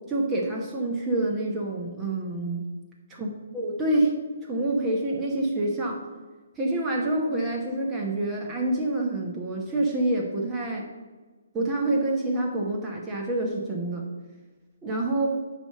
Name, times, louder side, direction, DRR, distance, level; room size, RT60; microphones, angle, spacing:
voice 1, 0.1-2.6 3.2-3.3 3.5-4.2 4.4-6.0 6.6-10.9 11.5-14.0 14.8-15.3, right 2 dB, 10° right, -2 dB, 1.0 m, -27 dB
9.7 x 3.5 x 6.6 m, 1.3 s
hypercardioid pair, 170°, 0 cm